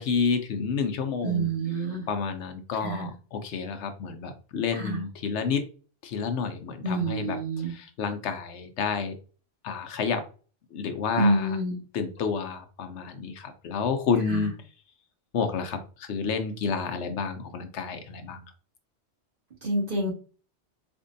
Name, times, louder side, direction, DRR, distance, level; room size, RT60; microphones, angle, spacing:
voice 1, 0.0-1.5 2.1-5.6 6.0-9.1 9.6-10.2 10.7-11.5 11.9-14.5 15.3-18.4, left 5 dB, 75° left, 7 dB, 0.9 m, -30 dB
voice 2, 1.2-2.1 2.8-3.1 4.7-5.0 6.8-7.7 11.2-11.8 14.3-14.5 19.6-20.1, right 2 dB, 35° right, -5 dB, 1.6 m, -27 dB
4.4 x 2.5 x 2.6 m, 0.36 s
omnidirectional pair, 1.2 m